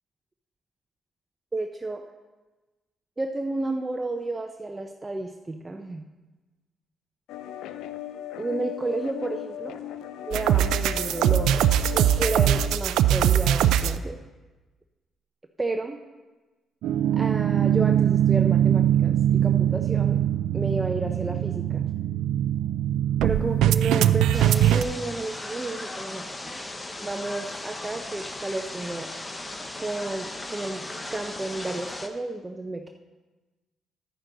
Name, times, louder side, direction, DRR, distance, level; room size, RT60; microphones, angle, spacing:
voice 1, 1.5-2.0 3.2-6.0 8.4-9.8 10.2-14.2 15.6-16.0 17.1-20.2 20.5-21.9 23.2-26.6 27.0-29.1 29.8-32.9, right 2 dB, 20° right, 4 dB, 0.6 m, -32 dB
sound 1, 7.3-12.7, left 12 dB, 85° left, 0.4 m, -37 dB
sound 2, 10.3-14.0 16.8-24.8, right 11 dB, 85° right, 0.3 m, -22 dB
sound 3, 24.3-32.1, left 2 dB, 20° left, 0.9 m, -37 dB
10.0 x 9.4 x 3.9 m, 1.2 s
cardioid pair, 90°, 0 cm